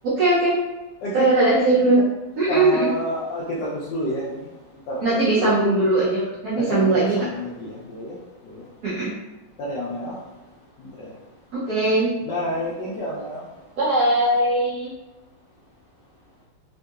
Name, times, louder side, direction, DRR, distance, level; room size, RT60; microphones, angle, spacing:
voice 1, 0.0-0.6 1.1-2.0 2.4-2.9 5.0-7.3 8.8-9.1 11.5-12.1 13.8-14.9, right 2 dB, 75° right, -8 dB, 0.8 m, -20 dB
voice 2, 2.5-4.5 4.9-5.5 6.6-8.2 8.4-8.6 9.6-10.2 10.8-11.1 12.2-13.4, left 1 dB, 75° left, -6 dB, 1.0 m, -29 dB
3.6 x 2.7 x 2.3 m, 1.0 s
omnidirectional pair, 2.4 m